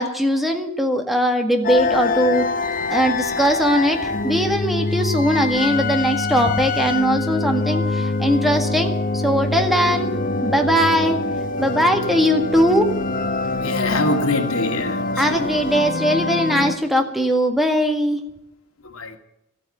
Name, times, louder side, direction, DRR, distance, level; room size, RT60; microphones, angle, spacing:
voice 1, 0.0-2.4 2.9-10.1 10.4-11.2 11.6-12.9 15.2-18.2, equal, ahead, 5 dB, 1.9 m, -20 dB
sound 1, 1.6-16.7, left 3 dB, 40° left, 1.1 m, -24 dB
voice 2, 13.6-15.5 18.8-19.2, left 2 dB, 85° left, 4 dB, 2.2 m, -24 dB
14.0 x 8.9 x 9.1 m, 0.84 s
head